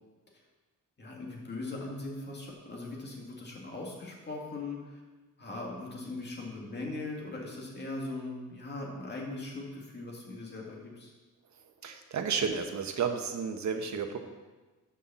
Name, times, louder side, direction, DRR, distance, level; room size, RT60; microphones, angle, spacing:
voice 1, 1.0-5.0 5.4-11.1, left 2 dB, 30° left, -2 dB, 2.1 m, -40 dB
voice 2, 11.6-14.2, right 6 dB, 60° right, 6 dB, 1.0 m, -32 dB
6.3 x 5.6 x 7.1 m, 1.3 s
cardioid pair, 110°, 32 cm